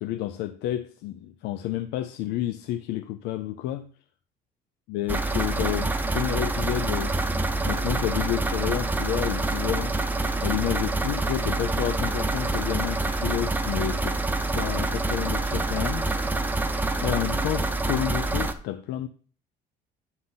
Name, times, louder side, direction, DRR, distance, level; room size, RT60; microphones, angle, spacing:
voice 1, 0.0-3.9 4.9-7.2 7.6-9.9 10.4-14.2 14.5-16.1 17.0-19.1, left 13 dB, 85° left, 0.4 m, -30 dB
sound 1, 5.1-18.5, right 2 dB, 10° right, 0.6 m, -26 dB
9.5 x 3.9 x 3.9 m
cardioid pair, 110°, 17 cm